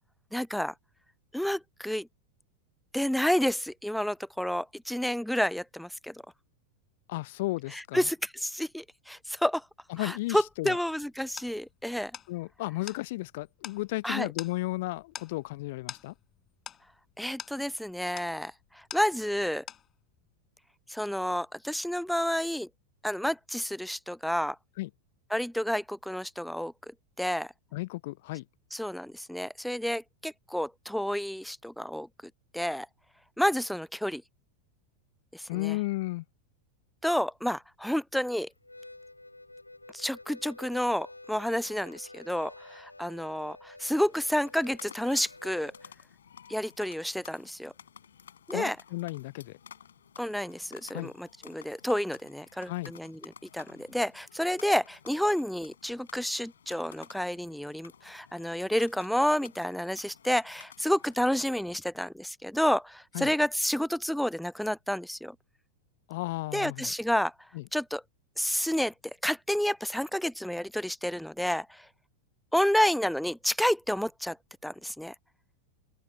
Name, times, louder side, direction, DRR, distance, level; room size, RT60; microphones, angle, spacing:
voice 1, 0.3-0.7 1.3-2.1 2.9-6.2 7.7-9.6 10.0-12.1 14.0-14.3 17.2-19.6 20.9-22.7 23.0-24.6 25.3-26.7 27.2-27.5 28.7-32.1 32.5-32.9 33.4-34.2 35.3-35.8 37.0-38.5 39.9-45.7 46.5-47.7 48.5-48.8 50.2-65.4 66.5-67.3 67.7-68.0 68.4-68.9 69.2-71.9 72.5-74.4 74.6-75.1, equal, ahead, 0.4 m, -30 dB
voice 2, 7.1-8.1 9.9-10.8 12.3-16.1 24.8-24.9 27.7-28.5 35.5-36.2 48.5-49.6 50.9-51.1 52.6-52.9 63.1-63.3 66.1-66.9 67.5-67.6, left 20 dB, 50° left, 0.6 m, -34 dB
Metronome even, 10.1-19.4 19.7-20.3, left 10 dB, 25° left, 5.4 m, -46 dB
Harmonica, 38.6-45.9, left 2 dB, 85° left, 3.9 m, -49 dB
sound 1, 44.0-61.3, left 8 dB, 65° left, 4.3 m, -53 dB
open air
figure-of-eight pair, 90°, 0 cm